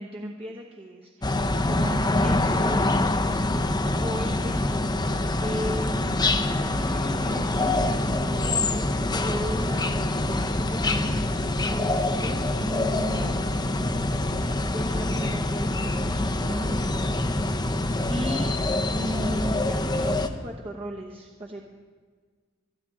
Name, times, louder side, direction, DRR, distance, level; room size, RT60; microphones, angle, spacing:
voice 1, 0.0-2.8 4.0-6.4 6.7-13.5 14.1-17.5 18.1-18.6 18.9-21.7, equal, 30° right, -1 dB, 1.1 m, -36 dB
sound 1, 1.2-20.3, left 2 dB, 20° left, 0.7 m, -25 dB
26.0 x 9.7 x 3.7 m, 1.6 s
head